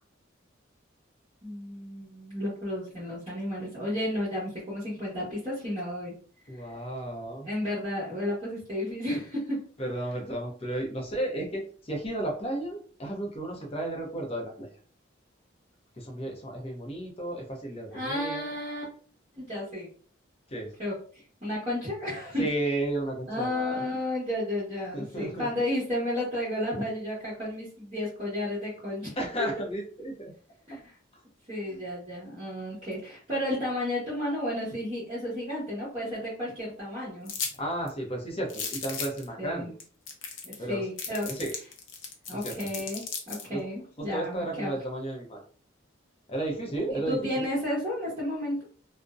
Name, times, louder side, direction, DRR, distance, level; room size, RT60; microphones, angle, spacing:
voice 1, 1.4-6.1 7.4-9.6 17.9-18.8 19.3-19.9 20.8-22.5 23.3-29.1 30.7-30.9 31.5-37.3 39.4-39.7 40.4-41.3 42.3-44.7 46.9-48.6, left 1 dB, 30° right, -8 dB, 1.0 m, -32 dB
voice 2, 6.5-7.5 9.8-14.7 15.9-18.4 20.5-20.7 22.4-23.8 24.9-25.5 29.2-30.3 31.1-31.2 31.7-31.8 37.6-39.7 40.6-40.9 41.2-41.5 42.4-42.5 43.5-43.6 44.0-45.4 46.3-47.5, right 1 dB, 30° left, 0 dB, 0.6 m, -33 dB
sound 1, 37.3-37.5 37.9-38.0 38.5-39.2 39.8-39.9 40.1-40.6 41.0-43.5, left 6 dB, 75° left, 0.6 m, -35 dB
2.5 x 2.1 x 2.3 m, 0.43 s
head